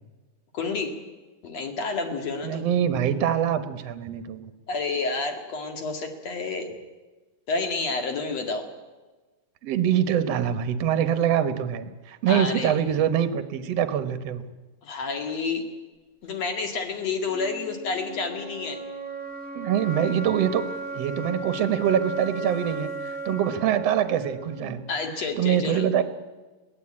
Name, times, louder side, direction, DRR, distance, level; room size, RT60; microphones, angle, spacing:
voice 1, 0.5-1.0 1.4-2.7 4.7-6.7 7.5-8.7 12.3-12.7 14.8-15.7 16.2-18.8 24.9-25.9, left 4 dB, 50° left, 5 dB, 3.0 m, -29 dB
voice 2, 2.4-4.5 9.6-14.4 19.6-20.6 21.0-24.8 25.4-26.0, right 9 dB, 60° right, 11 dB, 2.0 m, -24 dB
sound 1, 17.2-25.2, right 3 dB, 15° right, 2.5 m, -36 dB
22.0 x 17.0 x 8.8 m, 1.2 s
omnidirectional pair, 4.0 m